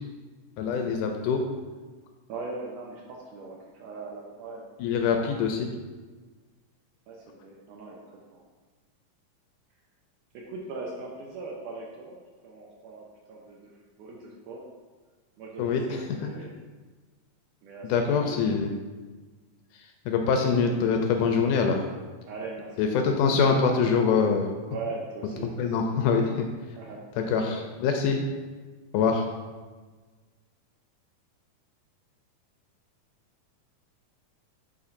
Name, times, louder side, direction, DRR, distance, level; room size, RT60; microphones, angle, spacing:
voice 1, 0.6-1.5 4.8-5.7 15.6-16.0 17.9-18.7 20.1-21.9 22.8-24.5 25.6-26.5 27.2-28.2 28.9-29.2, left 5 dB, 80° left, 3 dB, 1.9 m, -24 dB
voice 2, 2.3-4.6 7.1-8.0 8.3-8.4 10.3-14.6 15.4-16.5 17.6-18.6 22.3-22.8 23.0-23.2 24.7-26.0 26.8-27.0 27.5-27.6, right 3 dB, 75° right, -2 dB, 2.0 m, -40 dB
9.7 x 4.3 x 2.6 m, 1.4 s
omnidirectional pair, 4.0 m